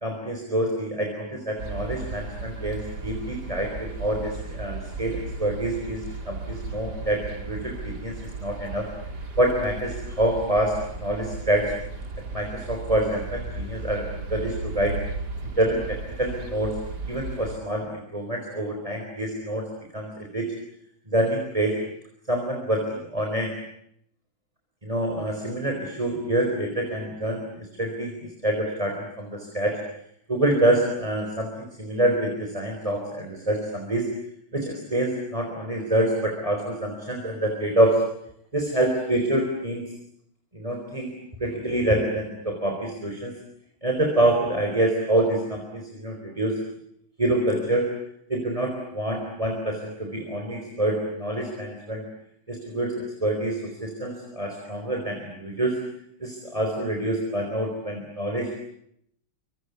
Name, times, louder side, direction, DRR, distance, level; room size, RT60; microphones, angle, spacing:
voice 1, 0.0-8.9 9.4-11.7 12.3-15.0 15.4-16.7 17.1-19.7 19.9-20.5 21.1-21.8 22.3-23.5 24.8-29.8 30.3-34.1 34.5-38.0 38.5-39.9 40.5-41.1 41.4-43.3 43.8-46.6 47.2-47.9 48.3-52.0 52.5-55.8 56.2-58.5, right 1 dB, 15° right, 2 dB, 4.1 m, -26 dB
sound 1, 1.6-17.6, right 3 dB, 50° right, 3.7 m, -35 dB
27.5 x 25.5 x 8.2 m, 0.72 s
omnidirectional pair, 2.3 m